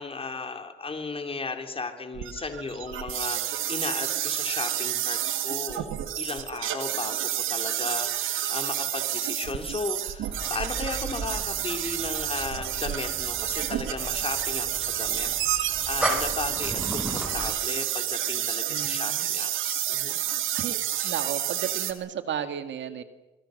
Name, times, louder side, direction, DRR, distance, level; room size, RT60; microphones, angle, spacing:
voice 1, 0.0-20.2 21.0-21.2, left 3 dB, 30° left, 6 dB, 3.5 m, -35 dB
sound 1, 2.1-21.9, right 12 dB, 85° right, 2.0 m, -30 dB
sound 2, 10.2-17.6, equal, 5° right, 6.5 m, -36 dB
voice 2, 18.7-19.3 20.5-20.8 21.0-23.0, right 9 dB, 65° right, 10 dB, 2.0 m, -33 dB
26.5 x 21.5 x 6.6 m, 1.1 s
cardioid pair, 90°, 20 cm